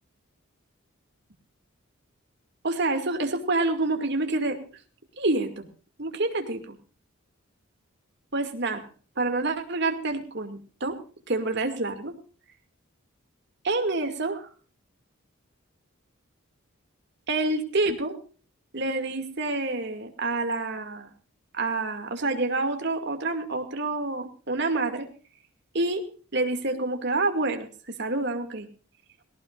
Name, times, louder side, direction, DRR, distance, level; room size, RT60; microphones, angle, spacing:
voice 1, 2.6-4.6 5.2-5.7 6.0-6.8 8.3-8.8 9.2-11.0 11.3-12.1 13.6-14.5 17.3-18.2 18.7-21.1 21.5-25.1 25.7-26.0 26.3-27.7 28.0-28.7, right 2 dB, 55° right, 5 dB, 2.4 m, -27 dB
18.5 x 18.0 x 2.5 m, 0.38 s
head